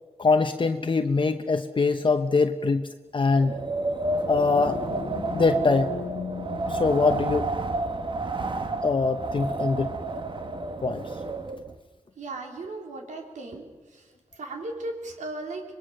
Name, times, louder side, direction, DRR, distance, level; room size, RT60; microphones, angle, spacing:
voice 1, 0.2-3.6 4.3-4.8 5.3-5.9 6.7-7.5 8.8-9.9 10.8-11.0, left 4 dB, 40° left, 7 dB, 0.9 m, -23 dB
Wind, 3.3-11.7, right 2 dB, 40° right, 1.3 m, -30 dB
sound 1, 4.2-7.9, left 5 dB, 80° left, 1.5 m, -38 dB
voice 2, 12.2-13.7 13.9-15.6, right 2 dB, 85° right, 2 dB, 3.8 m, -36 dB
25.5 x 20.5 x 6.6 m, 1.2 s
wide cardioid pair, 85°, 12 cm